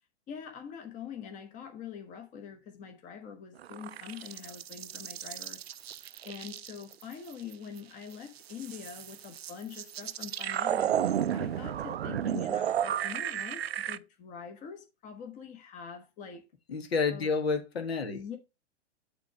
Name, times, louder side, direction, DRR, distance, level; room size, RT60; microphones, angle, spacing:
voice 1, 0.3-5.6 6.2-10.9 11.3-16.4 17.1-17.3 18.0-18.4, left 7 dB, 20° left, 1.2 m, -44 dB
sound 1, 3.6-7.8 8.1-14.0, right 10 dB, 65° right, 0.5 m, -33 dB
voice 2, 16.7-18.4, left 4 dB, 60° left, 1.6 m, -30 dB
8.8 x 3.4 x 4.8 m
figure-of-eight pair, 105°, 34 cm